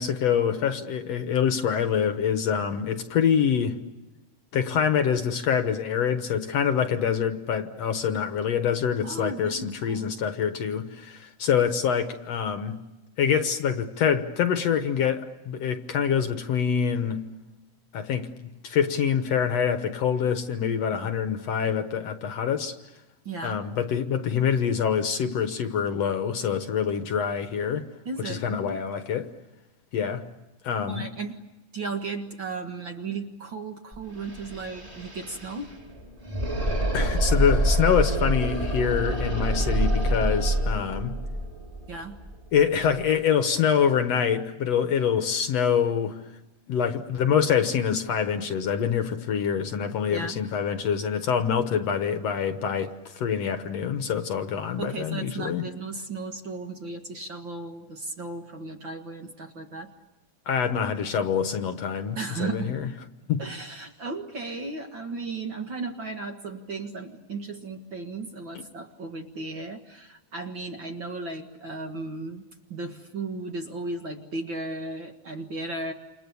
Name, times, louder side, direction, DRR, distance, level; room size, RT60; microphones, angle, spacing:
voice 1, 0.0-3.8 4.5-12.8 13.2-17.2 17.9-18.3 18.6-22.7 23.4-27.9 28.2-29.3 29.9-30.3 30.6-31.1 36.9-41.1 42.5-46.2 46.7-55.6 60.5-62.9 63.3-63.4, left 7 dB, 60° left, 2.1 m, -25 dB
voice 2, 9.0-10.2 21.0-21.2 23.3-23.6 28.1-28.8 30.9-31.4 31.7-35.8 41.9-42.2 50.1-50.4 54.8-59.9 62.2-62.8 63.4-75.9, right 3 dB, 45° right, 2.0 m, -35 dB
sound 1, 33.9-34.0 34.2-43.0, right 1 dB, 10° right, 2.8 m, -26 dB
29.0 x 27.5 x 7.0 m
omnidirectional pair, 3.7 m